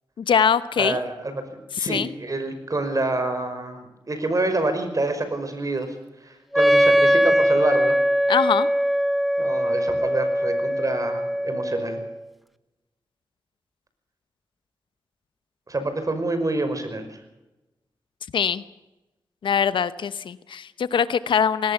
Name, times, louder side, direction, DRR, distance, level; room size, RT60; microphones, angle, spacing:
voice 1, 0.2-1.0 1.7-2.1 8.3-8.7 18.3-18.6 19.4-21.7, left 7 dB, 90° left, 15 dB, 0.9 m, -22 dB
voice 2, 0.8-1.4 1.8-5.9 6.2-8.0 9.4-12.0 15.7-17.2, right 2 dB, 45° right, 8 dB, 5.6 m, -27 dB
Wind instrument woodwind instrument, 6.5-12.2, equal, ahead, 1.0 m, -21 dB
20.0 x 18.0 x 7.1 m, 1.0 s
cardioid pair, 45°, 8 cm